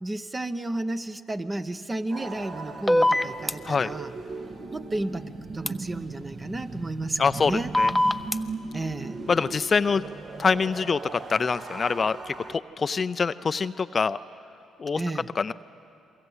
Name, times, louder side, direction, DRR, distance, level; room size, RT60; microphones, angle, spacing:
voice 1, 0.0-4.1 4.7-7.7 8.7-9.2 15.0-15.3, right 2 dB, 25° right, 9 dB, 1.1 m, -32 dB
sound 1, 2.1-12.6, right 3 dB, 55° right, 2.1 m, -38 dB
sound 2, 2.9-3.5 5.7-5.8 7.7-8.4, left 1 dB, 5° left, 0.8 m, -21 dB
voice 2, 7.2-7.5 7.8-7.9 9.3-10.0 10.4-14.2 14.8-15.0 15.4-15.5, left 5 dB, 40° left, 13 dB, 0.5 m, -25 dB
28.5 x 22.5 x 8.1 m, 2.6 s
supercardioid pair, 65°, 0 cm